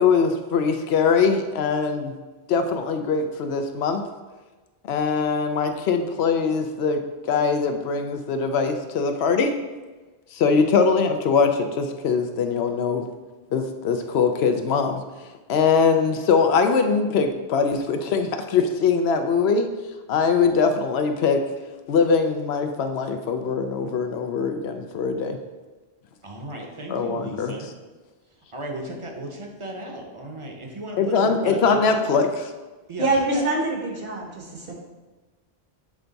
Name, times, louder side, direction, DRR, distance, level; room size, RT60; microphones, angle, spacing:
voice 1, 0.0-2.1 2.5-4.0 4.9-9.5 10.3-13.0 13.5-15.0 15.5-19.7 20.1-21.4 21.9-25.4 26.9-27.5 31.0-32.3, left 5 dB, 80° left, 6 dB, 0.8 m, -22 dB
voice 2, 26.2-27.7 28.5-32.0 32.9-33.4, right 1 dB, 30° right, 1 dB, 0.8 m, -35 dB
voice 3, 33.0-34.7, right 2 dB, 60° right, 0 dB, 1.3 m, -25 dB
7.4 x 3.4 x 3.9 m, 1.2 s
omnidirectional pair, 1.1 m